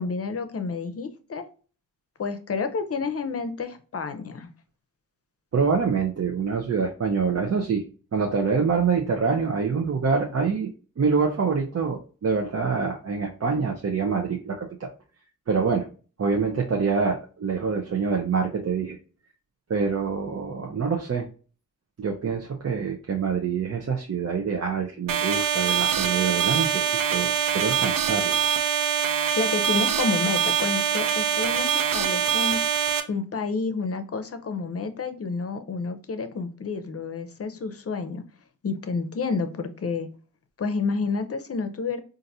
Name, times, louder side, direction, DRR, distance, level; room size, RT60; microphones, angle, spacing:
voice 1, 0.0-1.5 2.2-4.5 29.4-38.2 38.6-40.1 40.6-42.0, left 4 dB, 45° left, 9 dB, 0.6 m, -29 dB
voice 2, 5.5-7.8 8.1-10.7 11.0-14.9 15.5-15.9 16.2-19.0 19.7-21.3 22.0-28.4, right 5 dB, 50° right, 1 dB, 0.6 m, -25 dB
sound 1, 25.1-33.0, right 8 dB, 85° right, 0.5 m, -24 dB
4.0 x 2.6 x 2.6 m, 0.37 s
cardioid pair, 55°, 33 cm